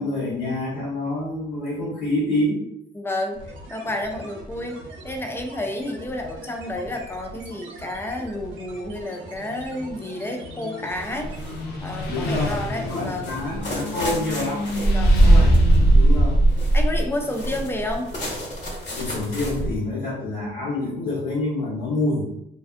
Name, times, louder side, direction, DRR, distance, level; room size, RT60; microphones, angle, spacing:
voice 1, 0.0-2.6 12.0-14.7 15.2-16.4 19.0-22.2, left 2 dB, 80° left, -9 dB, 1.0 m, -27 dB
voice 2, 2.9-3.4 3.7-11.3 11.8-13.3 14.9-15.2 16.7-18.1, left 1 dB, 10° left, 2 dB, 0.4 m, -30 dB
sound 1, 3.3-14.2, right 1 dB, 75° right, 0.6 m, -42 dB
Motorcycle, 9.3-19.1, left 2 dB, 55° left, 0.6 m, -34 dB
sound 2, 11.0-11.6 12.0-19.8, right 1 dB, 40° left, 1.1 m, -20 dB
2.5 x 2.3 x 2.4 m, 0.80 s
cardioid pair, 90°, 20 cm